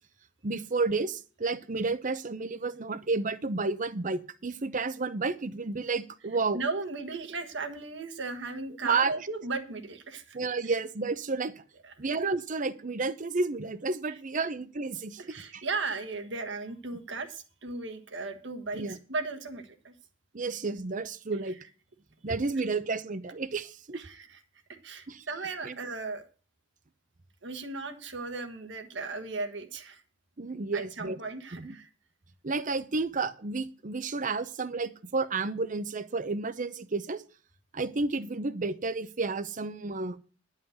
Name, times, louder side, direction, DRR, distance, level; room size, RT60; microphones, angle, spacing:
voice 1, 0.4-6.6 8.8-9.2 10.3-11.5 12.0-15.2 15.5-15.6 18.7-19.0 20.3-21.6 22.2-24.0 25.1-25.2 25.6-25.7 30.4-31.2 31.5-31.7 32.4-37.2 37.7-40.2, right 3 dB, 40° right, 13 dB, 0.7 m, -31 dB
voice 2, 6.5-10.4 10.6-10.7 11.8-11.9 15.2-19.9 23.9-24.4 24.8-26.2 27.4-30.0 30.7-31.9, right 3 dB, 65° right, 6 dB, 1.5 m, -36 dB
11.0 x 5.6 x 8.0 m, 0.39 s
head